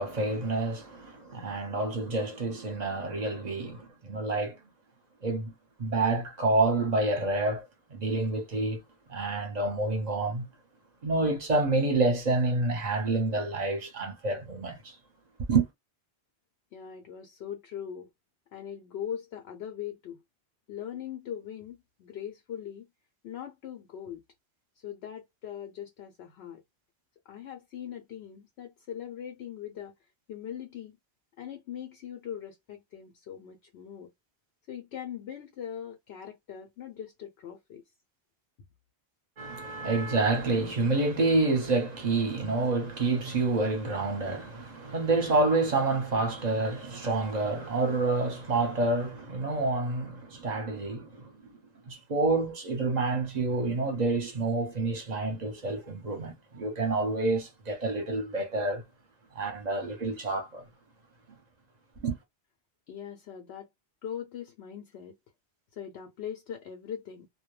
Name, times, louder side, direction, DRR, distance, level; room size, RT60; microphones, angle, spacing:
voice 1, 0.0-4.6 5.2-5.5 5.8-7.6 7.9-8.8 9.1-10.5 11.0-15.0 15.5-15.7 39.4-51.6 51.9-58.8 59.3-60.6 62.0-62.2, right 3 dB, 45° right, 0.8 m, -28 dB
voice 2, 16.7-18.1 18.5-20.2 20.7-22.9 23.2-24.2 24.8-26.6 27.3-29.9 30.3-31.0 31.4-34.1 34.7-37.8 62.9-63.7 64.0-65.1 65.7-67.3, left 9 dB, 85° left, 0.9 m, -41 dB
2.2 x 2.2 x 3.0 m
omnidirectional pair, 1.1 m